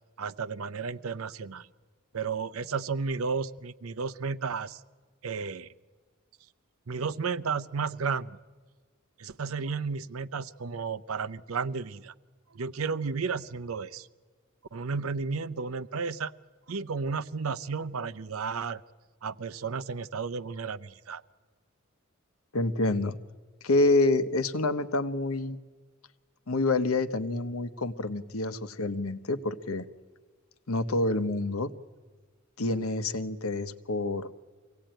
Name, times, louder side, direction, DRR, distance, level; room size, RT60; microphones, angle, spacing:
voice 1, 0.2-1.7 2.1-4.8 5.2-5.7 6.9-8.4 9.2-12.1 12.5-14.1 14.7-16.3 16.7-18.8 19.2-21.2, right 5 dB, 80° right, 14 dB, 0.7 m, -33 dB
voice 2, 22.5-23.2 23.6-25.6 26.5-29.8 30.7-31.7 32.6-34.3, left 2 dB, 80° left, 12 dB, 1.0 m, -27 dB
24.0 x 16.5 x 9.0 m, 1.4 s
head